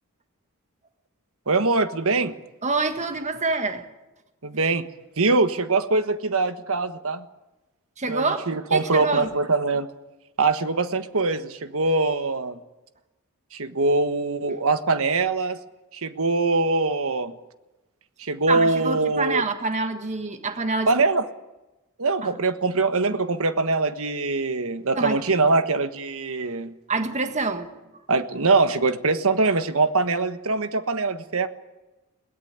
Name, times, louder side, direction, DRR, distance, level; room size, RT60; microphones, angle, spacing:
voice 1, 1.5-2.3 4.4-4.8 5.2-7.2 8.1-9.9 10.4-12.6 13.5-15.6 15.9-17.3 18.2-19.4 20.9-21.2 22.0-26.7 28.1-31.5, right 3 dB, 65° right, 10 dB, 1.4 m, -23 dB
voice 2, 2.6-3.9 8.0-8.4 8.7-9.3 18.5-20.9 22.2-22.3 24.9-25.2 26.9-27.7, right 3 dB, 30° right, 7 dB, 1.6 m, -26 dB
22.0 x 17.5 x 9.5 m, 1.0 s
head